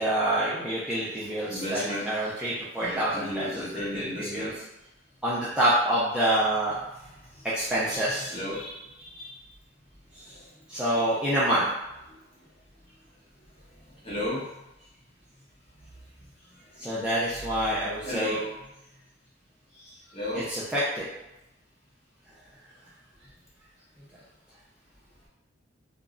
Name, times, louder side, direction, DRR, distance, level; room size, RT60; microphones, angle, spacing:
voice 1, 0.0-3.5 3.9-4.5 5.2-6.7 7.4-8.3 10.7-11.6 16.8-18.4 20.3-21.1, right 1 dB, 5° right, -9 dB, 0.4 m, -27 dB
voice 2, 1.1-2.1 2.8-4.5 7.8-9.3 10.3-10.4 10.9-11.0 14.0-14.4 16.9-17.0 17.2-17.6 18.0-18.5 20.1-20.5, left 1 dB, 30° left, -7 dB, 0.9 m, -34 dB
2.3 x 2.0 x 3.6 m, 0.91 s
head